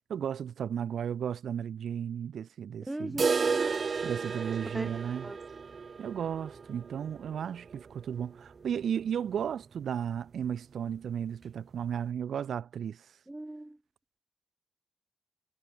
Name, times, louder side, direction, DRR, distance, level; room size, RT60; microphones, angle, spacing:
voice 1, 0.1-3.2 4.0-5.3 6.0-13.0, right 8 dB, 75° right, 3.1 m, -34 dB
voice 2, 2.9-3.8 4.7-4.9 5.2-5.4 13.3-13.8, right 1 dB, 15° right, 6.6 m, -38 dB
sound 1, 3.2-9.0 9.3-9.4 9.7-9.8 10.3-10.4 11.3-11.4, right 5 dB, 45° right, 0.9 m, -33 dB
cardioid pair, 85°, 0 cm